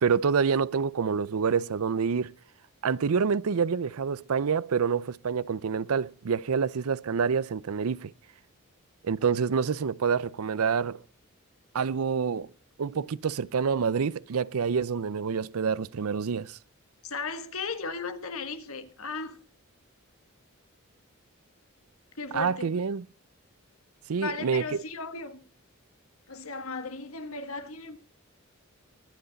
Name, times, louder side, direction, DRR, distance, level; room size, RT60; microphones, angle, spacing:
voice 1, 0.0-2.3 2.8-8.1 9.0-11.0 11.7-12.5 12.8-16.6 22.3-23.0 24.1-24.6, right 6 dB, 80° right, 0.5 m, -27 dB
voice 2, 17.0-19.4 22.2-22.7 24.2-25.4 26.3-28.0, left 4 dB, 75° left, 1.5 m, -36 dB
23.0 x 8.0 x 4.0 m
head